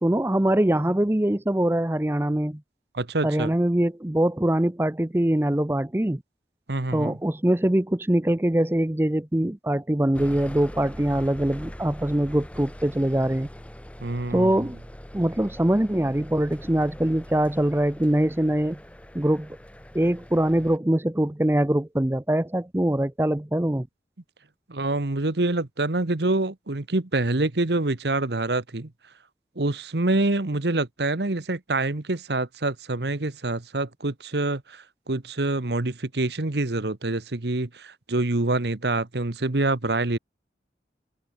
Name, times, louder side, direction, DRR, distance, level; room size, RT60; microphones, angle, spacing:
voice 1, 0.0-2.6 3.2-6.2 6.9-13.5 14.3-14.8 15.1-18.8 19.1-19.5 19.9-23.9, right 1 dB, 15° right, 0.6 m, -23 dB
voice 2, 2.9-3.5 6.7-7.2 14.0-14.7 24.7-28.9 29.6-40.2, right 2 dB, 70° right, 1.3 m, -26 dB
sound 1, 10.1-20.8, equal, 5° left, 1.4 m, -42 dB
head